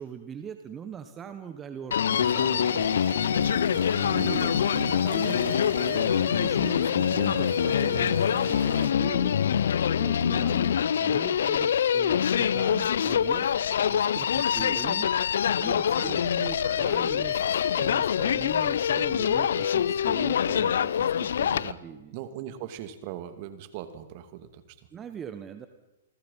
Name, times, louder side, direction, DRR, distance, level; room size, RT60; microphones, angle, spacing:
voice 1, 0.0-2.9 4.0-9.4 9.9-15.1 15.6-22.1 24.9-25.7, right 7 dB, 20° right, 9 dB, 1.5 m, -41 dB
Human voice, 1.9-21.7, left 8 dB, 70° left, 0.8 m, -25 dB
sound 1, 2.1-8.9, right 7 dB, 65° right, 2.9 m, -39 dB
voice 2, 4.1-4.6 5.1-5.6 16.0-16.2 21.4-21.8 22.1-24.6, right 11 dB, 45° right, 11 dB, 2.5 m, -40 dB
28.5 x 20.5 x 5.7 m, 0.97 s
hypercardioid pair, 125°, 0 cm